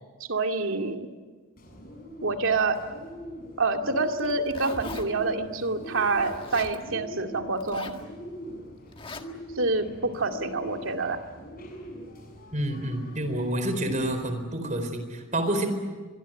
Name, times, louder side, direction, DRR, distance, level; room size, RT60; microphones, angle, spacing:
voice 1, 0.3-1.1 2.2-2.8 3.6-7.9 9.6-11.2, right 3 dB, 70° right, 4 dB, 2.3 m, -27 dB
Bird, 1.6-14.3, equal, 45° left, 7.0 m, -43 dB
Zipper (clothing), 4.1-5.1 6.2-6.8 7.6-8.0 8.9-9.2, left 3 dB, 25° left, 1.7 m, -39 dB
voice 2, 12.5-15.7, right 1 dB, 35° right, 8 dB, 4.1 m, -28 dB
25.0 x 22.5 x 9.1 m, 1.3 s
head